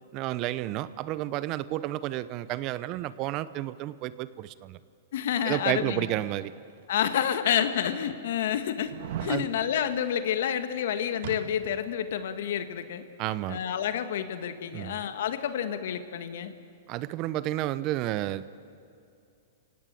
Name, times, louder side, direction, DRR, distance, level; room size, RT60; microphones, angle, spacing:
voice 1, 0.1-4.8 5.4-6.5 9.3-9.5 13.2-13.6 14.7-15.0 16.9-18.5, right 15 dB, 40° right, 16 dB, 0.8 m, -31 dB
voice 2, 5.1-6.1 6.9-8.9 9.2-13.0 13.5-16.5, left 9 dB, 70° left, 10 dB, 1.7 m, -29 dB
sound 1, 6.9-7.0 7.7-7.8 8.9-9.4 11.2-11.9 12.2-12.3, right 9 dB, 60° right, 1.5 m, -37 dB
29.5 x 17.0 x 8.5 m, 2.6 s
hypercardioid pair, 130°, 0 cm